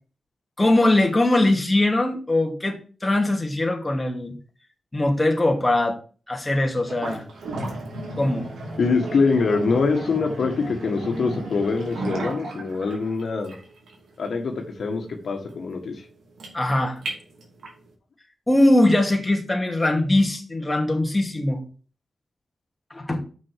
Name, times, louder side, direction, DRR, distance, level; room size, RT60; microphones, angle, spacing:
voice 1, 0.6-4.4 4.9-6.0 6.3-7.2 8.2-8.4 16.5-17.0 18.5-21.6 22.9-23.2, left 1 dB, 20° left, 2 dB, 2.5 m, -21 dB
sound 1, 6.8-17.9, right 2 dB, 85° right, 2.8 m, -35 dB
voice 2, 8.8-13.6 14.2-16.1, left 4 dB, 75° left, 3 dB, 1.6 m, -24 dB
6.3 x 6.1 x 7.4 m, 0.39 s
cardioid pair, 60°, 0 cm